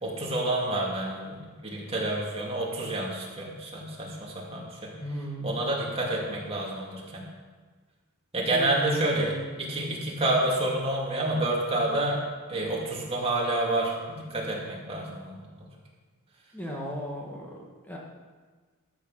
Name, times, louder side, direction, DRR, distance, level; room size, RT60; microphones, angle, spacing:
voice 1, 0.0-4.7 5.4-7.2 8.3-9.3 9.6-12.2 12.5-15.4, right 2 dB, 25° right, -3 dB, 2.5 m, -29 dB
voice 2, 5.0-5.6 8.5-9.4 16.5-18.0, equal, 10° left, -2 dB, 1.4 m, -36 dB
13.0 x 6.3 x 6.3 m, 1.4 s
head